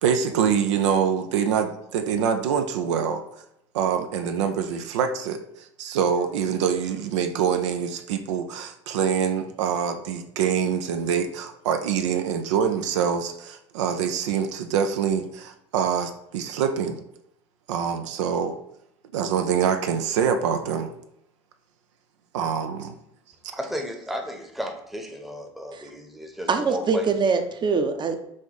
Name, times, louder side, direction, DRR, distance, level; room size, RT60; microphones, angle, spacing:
voice 1, 0.0-3.2 3.7-17.0 17.7-18.5 19.1-20.9 22.3-22.9, right 7 dB, 75° right, 6 dB, 0.4 m, -25 dB
voice 2, 23.5-27.1, equal, ahead, 3 dB, 0.8 m, -33 dB
voice 3, 26.5-28.2, right 5 dB, 30° right, 6 dB, 0.7 m, -23 dB
5.0 x 2.5 x 3.9 m, 0.78 s
hypercardioid pair, 75°, 15 cm